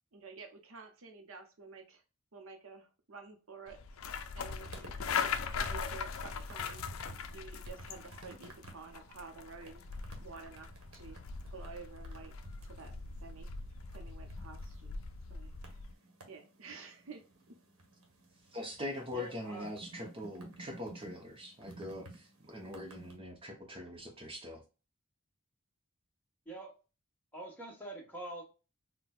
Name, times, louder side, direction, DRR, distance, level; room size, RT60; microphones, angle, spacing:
voice 1, 0.1-2.0 2.3-3.8 4.3-7.0 7.3-9.8 10.2-12.3 12.6-12.9 13.2-13.5 13.9-15.0 15.3-15.8 16.2-17.6, right 4 dB, 75° right, 5 dB, 0.7 m, -51 dB
sound 1, 3.7-15.9, left 6 dB, 75° left, 0.4 m, -41 dB
sound 2, 4.4-23.2, right 2 dB, 90° right, 1.0 m, -55 dB
voice 2, 18.5-24.6, left 1 dB, 25° right, 2 dB, 0.7 m, -42 dB
voice 3, 19.1-19.7 26.4-26.8 27.3-28.4, right 1 dB, 5° left, -3 dB, 1.1 m, -45 dB
4.2 x 2.2 x 2.3 m, 0.32 s
head